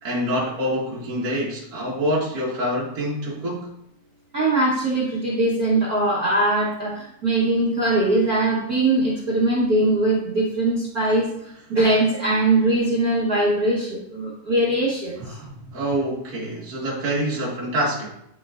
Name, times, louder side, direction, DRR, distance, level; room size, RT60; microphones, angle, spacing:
voice 1, 0.0-3.7 15.2-18.1, equal, 35° right, -5 dB, 1.8 m, -26 dB
voice 2, 4.3-11.3 11.7-15.4, right 2 dB, 65° right, -7 dB, 0.9 m, -21 dB
10.5 x 4.2 x 2.5 m, 0.77 s
omnidirectional pair, 3.7 m